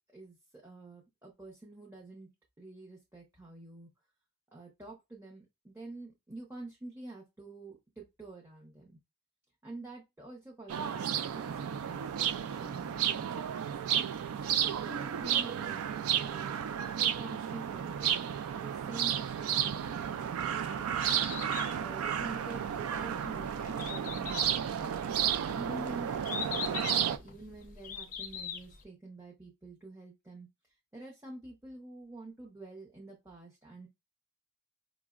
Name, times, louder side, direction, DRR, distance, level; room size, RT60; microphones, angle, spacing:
voice 1, 0.1-2.3 2.6-3.9 4.5-9.0 9.6-12.1 12.5-13.5 14.4-16.6 17.0-18.3 18.5-20.9 21.7-25.0 25.5-30.5 30.9-33.9, right 2 dB, 10° right, -2 dB, 0.6 m, -47 dB
sound 1, 10.7-27.2, right 9 dB, 85° right, 0.3 m, -32 dB
Bird, 20.9-28.8, left 7 dB, 40° left, 0.4 m, -42 dB
4.8 x 2.0 x 2.3 m, 0.23 s
head